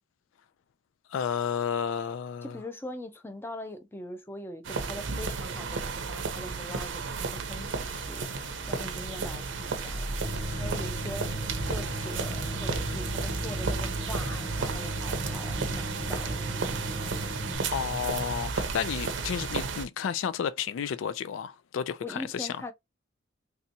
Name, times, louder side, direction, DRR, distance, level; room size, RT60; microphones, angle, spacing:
voice 1, 1.1-2.6 17.7-22.6, left 7 dB, 85° left, 0.3 m, -32 dB
voice 2, 2.4-8.3 8.7-10.1 10.6-11.3 11.7-17.5 22.0-22.7, left 1 dB, 10° left, 0.5 m, -42 dB
sound 1, 4.6-19.9, right 4 dB, 70° right, 0.6 m, -33 dB
sound 2, 7.6-12.8, equal, 50° left, 0.9 m, -43 dB
Tools, 10.2-17.6, equal, 25° right, 0.8 m, -36 dB
3.4 x 2.8 x 2.6 m
head